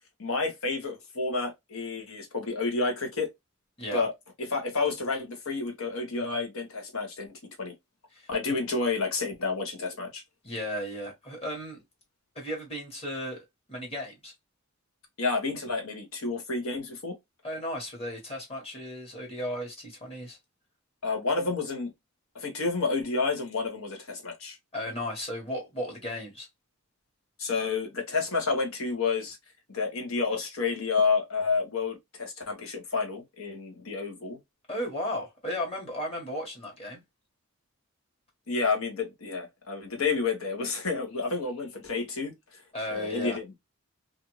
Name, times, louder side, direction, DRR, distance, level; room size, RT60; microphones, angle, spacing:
voice 1, 0.2-3.3 3.9-4.1 4.4-7.3 7.6-7.7 8.3-10.2 15.2-17.2 21.0-21.9 22.3-24.6 27.4-29.4 29.7-34.4 38.5-42.6 42.9-43.6, left 4 dB, 80° left, 1.0 m, -30 dB
voice 2, 10.4-11.8 12.3-14.3 17.4-20.4 24.7-26.5 34.7-37.0 42.7-43.4, left 1 dB, 30° left, 1.2 m, -35 dB
2.5 x 2.5 x 3.0 m
head